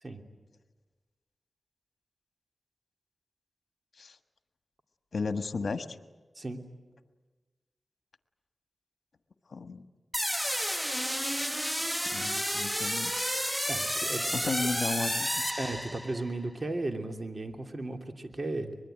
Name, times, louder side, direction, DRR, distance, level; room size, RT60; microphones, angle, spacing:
voice 1, 5.1-6.0 9.5-9.8 12.0-13.1 14.3-15.5, left 4 dB, 70° left, 10 dB, 1.4 m, -34 dB
sound 1, 10.1-16.3, equal, 5° right, 1.2 m, -31 dB
voice 2, 13.7-14.3 15.6-18.8, right 2 dB, 45° right, 5 dB, 3.0 m, -35 dB
24.5 x 21.5 x 9.2 m, 1.3 s
cardioid pair, 45°, 0 cm